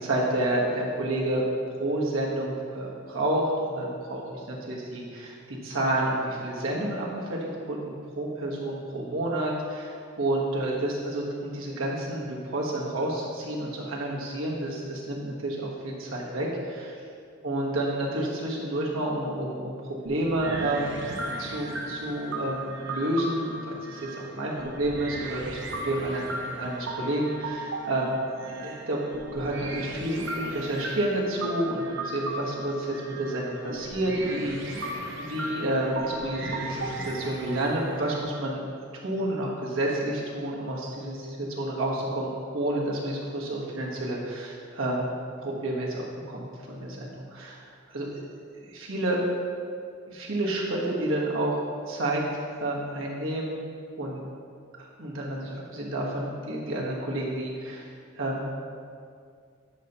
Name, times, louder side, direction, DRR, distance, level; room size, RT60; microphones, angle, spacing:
voice 1, 0.0-16.9 17.4-19.8 20.1-20.9 21.4-29.0 29.3-38.6 38.9-45.1 45.4-48.2 48.6-49.2 50.1-51.5 51.9-52.2 52.5-53.6 54.0-54.2 54.8-57.8 58.2-58.5, right 1 dB, 85° right, -3 dB, 1.4 m, -30 dB
sound 1, 20.0-38.2, right 1 dB, 65° right, 0.9 m, -36 dB
10.5 x 5.4 x 3.0 m, 2.2 s
head